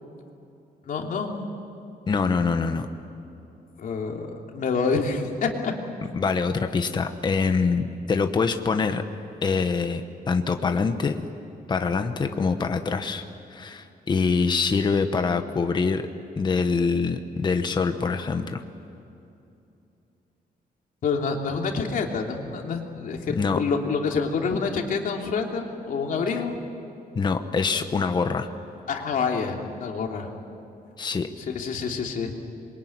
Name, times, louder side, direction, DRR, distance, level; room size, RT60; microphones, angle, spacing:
voice 1, 0.9-1.3 3.8-5.7 21.0-26.6 28.9-30.3 31.5-32.3, left 5 dB, 60° left, 1 dB, 3.1 m, -27 dB
voice 2, 2.1-2.9 6.1-9.1 9.4-11.3 11.7-13.2 13.5-16.1 16.4-18.6 23.3-23.6 27.1-28.5 31.0-31.3, left 4 dB, 25° left, 7 dB, 1.1 m, -24 dB
26.5 x 23.0 x 9.6 m, 2.7 s
wide cardioid pair, 175°, 16 cm